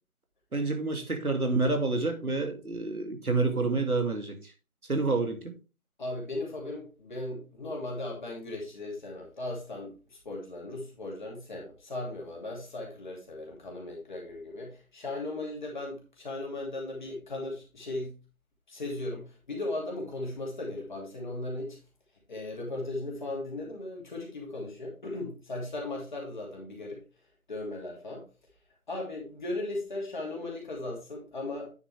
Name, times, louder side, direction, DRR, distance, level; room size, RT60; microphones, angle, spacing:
voice 1, 0.5-4.5 4.9-5.5, right 3 dB, 85° right, 2.6 m, -28 dB
voice 2, 6.0-18.2 18.7-21.8 22.3-27.0 27.5-28.3 28.9-31.7, left 2 dB, 35° left, 2.8 m, -37 dB
9.3 x 6.4 x 3.3 m
figure-of-eight pair, 165°, 43 cm